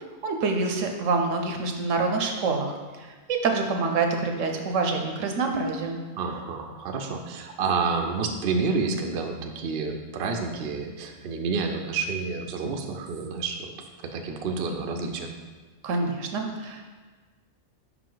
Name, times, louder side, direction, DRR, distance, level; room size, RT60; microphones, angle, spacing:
voice 1, 0.2-6.0 15.8-16.9, right 4 dB, 75° right, 4 dB, 1.0 m, -26 dB
voice 2, 6.2-13.7 14.1-15.3, right 4 dB, 60° right, 3 dB, 0.7 m, -29 dB
5.5 x 5.0 x 3.8 m, 1.4 s
omnidirectional pair, 1.4 m